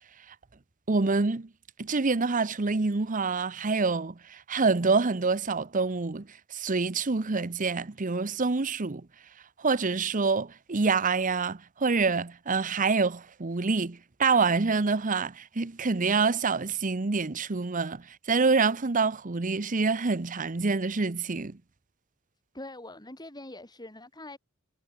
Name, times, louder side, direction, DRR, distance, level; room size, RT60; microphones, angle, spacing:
voice 1, 0.9-1.5 1.8-9.1 9.6-21.6, right 4 dB, 40° right, 0.8 m, -26 dB
voice 2, 22.5-24.4, left 1 dB, 20° left, 6.7 m, -43 dB
head